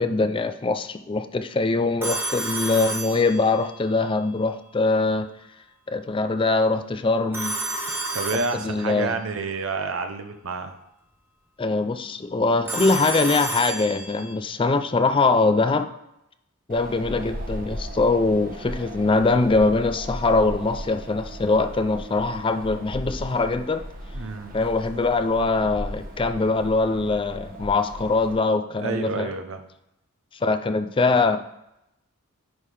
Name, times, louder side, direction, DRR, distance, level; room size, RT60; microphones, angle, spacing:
voice 1, 0.0-5.3 5.9-7.5 8.5-9.2 11.6-15.9 16.7-23.9 24.5-29.3 30.4-31.4, left 3 dB, 25° left, 9 dB, 0.4 m, -22 dB
Telephone, 2.0-3.8 7.3-9.0 12.7-14.4, right 2 dB, 10° right, 1.0 m, -30 dB
voice 2, 8.1-10.7 24.1-24.5 28.8-29.6, right 4 dB, 65° right, 7 dB, 0.8 m, -29 dB
Wind, 16.7-28.3, equal, 40° right, 1.1 m, -37 dB
10.0 x 3.6 x 4.9 m, 0.86 s
head